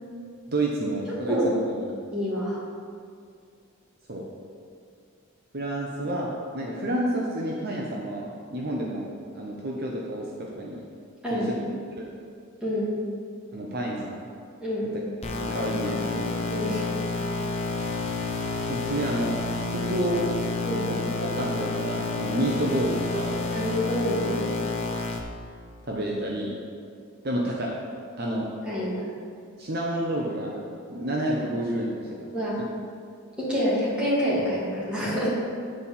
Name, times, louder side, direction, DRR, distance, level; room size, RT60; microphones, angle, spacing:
voice 1, 0.5-1.9 4.1-4.3 5.5-10.8 11.3-11.6 12.0-12.1 13.5-14.3 14.9-15.0 15.3-16.3 18.7-20.2 20.9-23.3 25.8-26.5 27.2-27.7 28.2-28.5 29.6-30.6 30.9-32.1 32.6-32.7, right 1 dB, 45° right, -2 dB, 0.8 m, -29 dB
voice 2, 2.1-2.6 11.2-11.7 12.6-12.9 14.6-14.9 16.5-16.8 20.6-20.9 23.5-24.5 28.7-29.1 32.3-32.6 33.4-35.3, equal, 5° right, -9 dB, 2.4 m, -27 dB
sound 1, 15.2-25.2, left 3 dB, 30° left, 0.7 m, -29 dB
8.7 x 4.3 x 7.2 m, 2.3 s
head